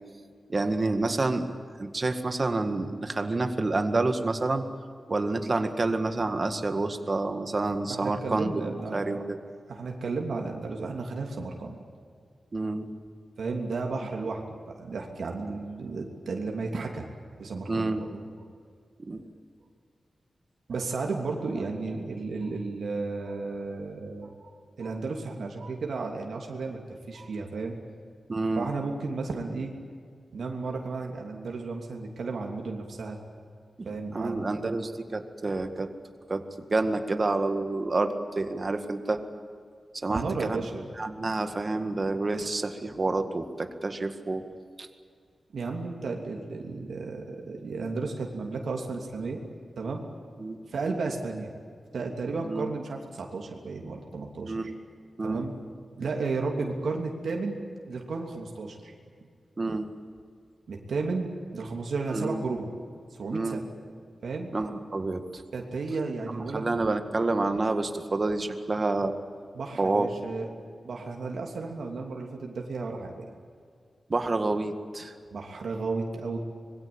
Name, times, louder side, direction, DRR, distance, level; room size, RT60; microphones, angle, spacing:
voice 1, 0.5-1.5 1.8-4.6 5.1-9.4 12.5-12.9 17.7-18.1 19.0-19.2 28.3-28.7 34.1-35.9 36.3-39.2 40.0-40.6 41.0-44.4 44.8-44.9 50.4-50.6 52.4-52.7 54.4-54.7 55.2-55.4 59.6-59.9 62.1-62.4 63.3-63.6 64.5-65.2 66.3-69.2 69.8-70.1 74.1-75.1, right 2 dB, 35° right, 7 dB, 1.9 m, -28 dB
voice 2, 7.9-9.2 9.7-11.8 13.4-17.1 17.4-18.2 20.7-26.8 27.1-27.8 28.6-29.7 30.3-33.2 33.8-34.8 40.1-40.9 45.5-49.4 49.8-50.0 50.7-51.5 51.9-54.7 55.2-55.5 56.0-58.9 60.7-62.7 63.1-63.7 64.2-64.5 65.5-66.6 69.5-70.5 70.8-73.3 75.3-76.4, right 3 dB, 85° right, 1 dB, 3.0 m, -33 dB
25.5 x 22.0 x 8.8 m, 2.2 s
wide cardioid pair, 145°, 0 cm